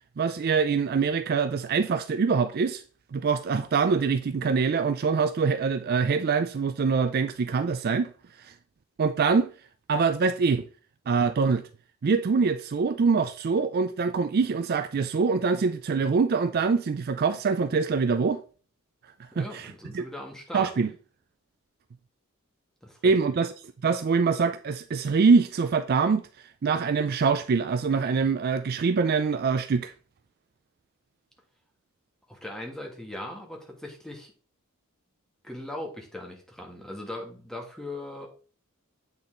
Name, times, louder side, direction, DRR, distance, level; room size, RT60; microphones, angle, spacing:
voice 1, 0.2-2.8 3.1-8.1 8.4-8.5 9.0-9.5 9.9-10.7 11.1-11.6 12.0-18.4 19.4-20.0 20.5-20.9 23.0-23.5 23.8-26.2 26.6-29.9, right 5 dB, 45° right, 0.4 m, -24 dB
voice 2, 19.3-20.7 22.8-23.3 32.3-34.3 35.4-38.3, left 1 dB, 5° left, 1.4 m, -39 dB
8.8 x 4.0 x 3.7 m
head